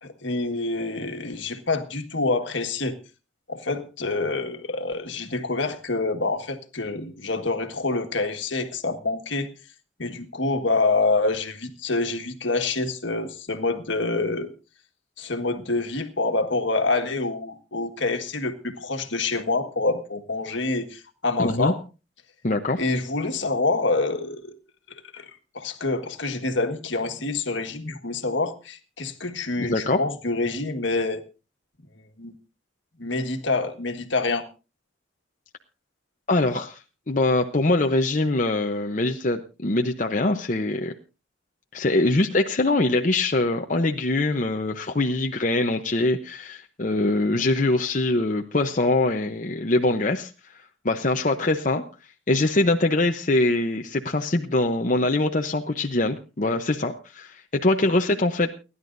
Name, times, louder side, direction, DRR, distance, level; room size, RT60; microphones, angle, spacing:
voice 1, 0.0-3.0 3.5-9.5 10.0-14.5 15.2-21.8 22.8-24.5 25.1-31.2 32.2-32.3 33.0-34.4, left 3 dB, 70° left, 6 dB, 1.6 m, -26 dB
voice 2, 21.4-21.7 22.4-22.8 29.6-30.0 36.3-36.8 37.1-40.9 41.7-50.3 50.8-51.8 52.3-58.5, left 2 dB, 40° left, 4 dB, 0.8 m, -23 dB
29.5 x 11.0 x 2.6 m, 0.32 s
head